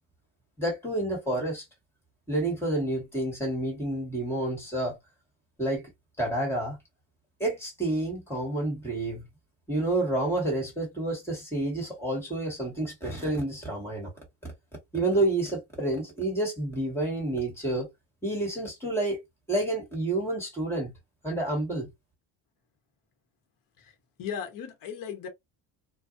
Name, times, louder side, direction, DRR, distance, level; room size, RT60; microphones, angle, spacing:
voice 1, 0.6-1.6 2.3-5.0 5.6-5.9 6.2-6.8 7.4-9.2 9.7-14.1 14.9-17.9 18.2-19.2 19.5-20.9 21.2-21.9, right 1 dB, 5° left, 1.5 m, -29 dB
voice 2, 23.8-25.3, left 7 dB, 60° left, 1.0 m, -37 dB
2.6 x 2.3 x 2.4 m
cardioid pair, 140°, 39 cm